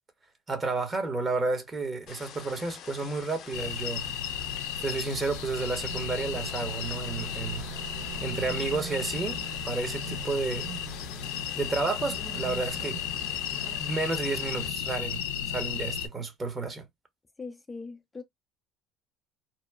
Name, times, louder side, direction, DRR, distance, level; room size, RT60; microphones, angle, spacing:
voice 1, 0.5-4.0 4.8-7.6 8.2-9.4 9.7-10.7 11.6-13.3 13.8-16.9, right 3 dB, 25° right, 1.0 m, -31 dB
sound 1, 2.1-14.7, left 8 dB, 60° left, 0.7 m, -46 dB
sound 2, 3.5-16.1, left 9 dB, 90° left, 0.4 m, -34 dB
sound 3, 5.9-13.8, right 8 dB, 65° right, 0.7 m, -44 dB
voice 2, 17.4-18.2, left 4 dB, 20° left, 0.5 m, -40 dB
2.9 x 2.0 x 2.3 m
supercardioid pair, 90°, 0 cm